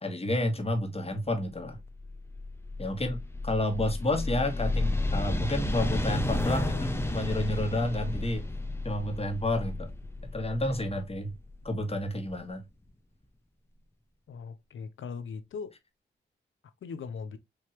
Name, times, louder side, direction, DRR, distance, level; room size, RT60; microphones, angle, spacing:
voice 1, 0.0-1.8 2.8-3.2 3.4-8.4 8.8-9.9 10.3-11.3 11.6-12.6, left 1 dB, 30° left, 1.6 m, -30 dB
sound 1, 1.6-12.3, left 2 dB, 10° left, 0.8 m, -32 dB
voice 2, 6.4-7.3 14.3-15.7 16.8-17.4, left 5 dB, 75° left, 0.7 m, -39 dB
4.9 x 2.9 x 3.0 m
cardioid pair, 50°, 20 cm